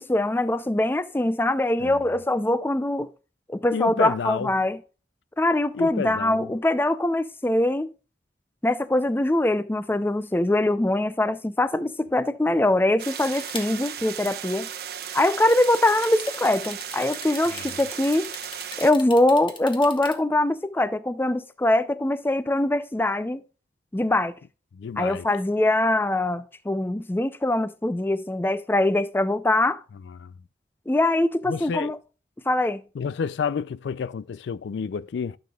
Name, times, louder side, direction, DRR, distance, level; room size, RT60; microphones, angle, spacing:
voice 1, 0.0-3.1 3.5-4.8 5.4-7.9 8.6-14.7 15.1-18.3 18.8-23.4 23.9-24.3 25.0-29.8 30.9-32.0 32.5-32.8, left 1 dB, 10° left, 0.4 m, -23 dB
voice 2, 3.7-4.5 5.7-6.5 17.5-17.7 24.7-25.3 30.2-30.3 31.5-31.9 33.0-35.4, left 6 dB, 80° left, 0.4 m, -30 dB
sound 1, 13.0-18.9, right 9 dB, 60° right, 0.9 m, -36 dB
sound 2, 13.2-13.9 15.5-20.1, left 4 dB, 30° left, 1.2 m, -39 dB
13.0 x 6.8 x 2.3 m
head